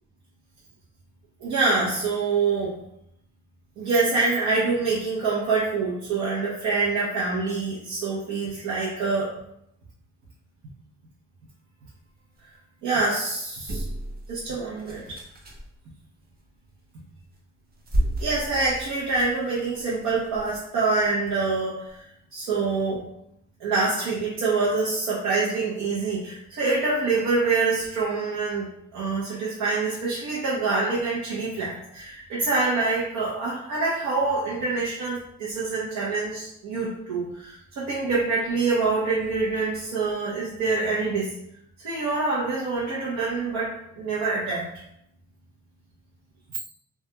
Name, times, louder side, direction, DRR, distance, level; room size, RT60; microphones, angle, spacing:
voice 1, 1.4-2.7 3.8-9.3 12.8-13.8 14.3-15.2 18.2-22.0 22.3-23.0 23.6-28.6 28.9-41.3 41.8-44.7, right 3 dB, 80° right, -6 dB, 0.7 m, -26 dB
sound 1, 13.7-15.7 17.2-17.4 17.7-21.3 21.9-22.0, right 1 dB, 30° right, 0.6 m, -32 dB
2.3 x 2.2 x 2.8 m, 0.77 s
cardioid pair, 90°, 30 cm